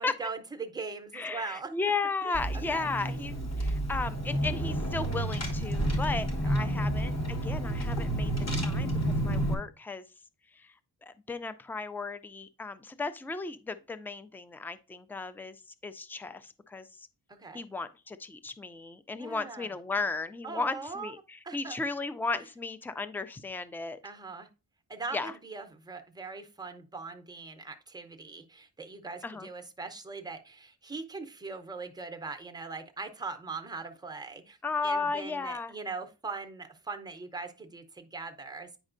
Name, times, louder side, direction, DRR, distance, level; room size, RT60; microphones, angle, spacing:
voice 1, 0.0-1.7 2.2-2.4 2.7-2.9 6.5-6.7 17.3-17.6 19.2-19.7 20.4-21.1 21.4-21.8 24.0-24.5 24.9-34.6 34.8-38.8, right 4 dB, 10° right, 0.7 m, -40 dB
voice 2, 1.1-10.0 10.5-10.7 11.0-15.6 15.8-17.1 17.5-24.0 25.1-25.3 29.2-29.5 34.6-35.7, left 3 dB, 5° left, 0.3 m, -35 dB
Car / Engine, 2.3-9.5, right 1 dB, 40° left, 1.2 m, -30 dB
8.9 x 5.2 x 2.6 m
wide cardioid pair, 140°, 40 cm